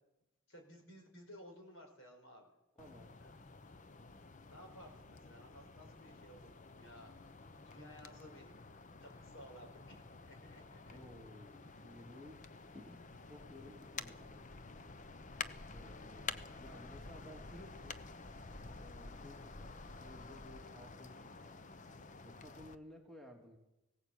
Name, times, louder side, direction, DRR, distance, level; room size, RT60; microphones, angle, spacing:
voice 1, 0.5-2.5 3.2-3.3 4.5-7.1 7.6-8.5 9.0-11.0, equal, 65° left, 3 dB, 5.3 m, -56 dB
sound 1, 2.8-22.8, left 4 dB, 35° left, 0.8 m, -50 dB
voice 2, 2.8-3.1 10.9-12.4 12.7-14.6 15.7-18.0 18.6-21.8 22.2-23.6, left 1 dB, ahead, 2 dB, 2.5 m, -56 dB
19.5 x 17.5 x 8.3 m, 0.94 s
head